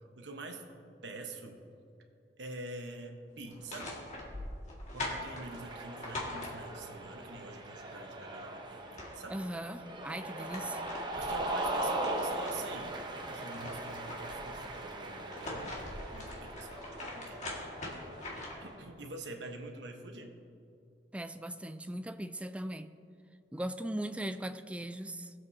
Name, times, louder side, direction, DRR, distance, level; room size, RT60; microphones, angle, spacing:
voice 1, 0.2-0.7 1.0-1.6 2.4-4.0 4.9-9.4 11.1-13.0 13.2-15.7 16.1-16.7 17.0-17.6 18.6-20.4, right 2 dB, 80° right, 4 dB, 1.1 m, -46 dB
sound 1, 3.5-7.0 8.4-8.5 8.8-9.6 10.1-12.8 13.2-14.5 15.1-18.7, left 2 dB, 40° left, 1.9 m, -43 dB
Cheering, 5.3-18.7, right 1 dB, 25° right, 0.8 m, -39 dB
voice 2, 9.3-10.8 21.1-22.9 23.5-25.3, right 1 dB, 5° right, 10 dB, 0.3 m, -39 dB
19.0 x 7.6 x 2.7 m, 2.5 s
head